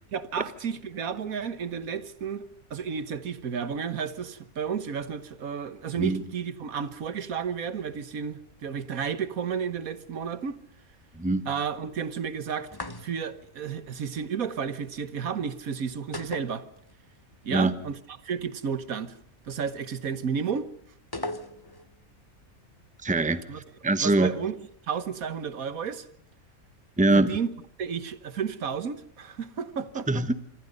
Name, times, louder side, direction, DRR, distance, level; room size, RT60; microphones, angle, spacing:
voice 1, 0.1-10.6 11.5-12.7 13.0-16.6 17.4-19.2 19.4-20.7 23.5-23.6 24.0-26.1 27.1-27.5 27.8-30.2, right 7 dB, 80° right, 1.7 m, -32 dB
voice 2, 11.2-11.5 17.5-17.7 23.0-23.4 23.8-24.3 27.0-27.4 30.1-30.3, right 2 dB, 5° right, 0.9 m, -23 dB
sound 1, 12.7-13.4 16.1-17.2 17.4-17.5 21.1-21.9, left 2 dB, 20° left, 1.1 m, -37 dB
26.5 x 25.0 x 5.3 m
omnidirectional pair, 1.5 m